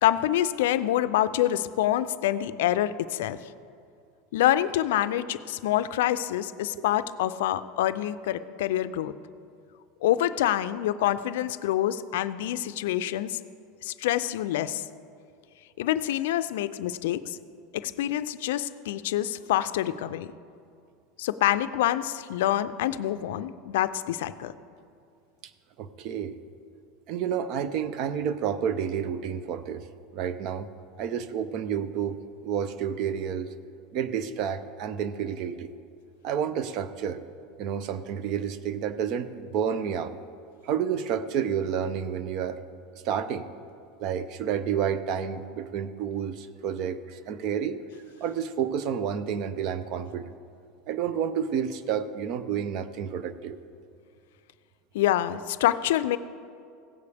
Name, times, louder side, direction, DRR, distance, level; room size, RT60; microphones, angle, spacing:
voice 1, 0.0-3.4 4.3-9.1 10.0-13.4 13.8-14.8 15.8-17.4 17.7-20.3 21.2-24.5 54.9-56.2, left 13 dB, 85° left, 13 dB, 0.4 m, -26 dB
voice 2, 25.8-26.4 27.1-29.9 30.1-30.7 31.0-33.5 33.9-35.7 36.2-37.2 37.6-40.2 40.6-42.6 42.9-43.5 44.0-47.8 48.2-50.3 50.9-53.6, right 8 dB, 50° right, 13 dB, 0.6 m, -30 dB
16.5 x 8.3 x 3.4 m, 2.4 s
supercardioid pair, 145°, 0 cm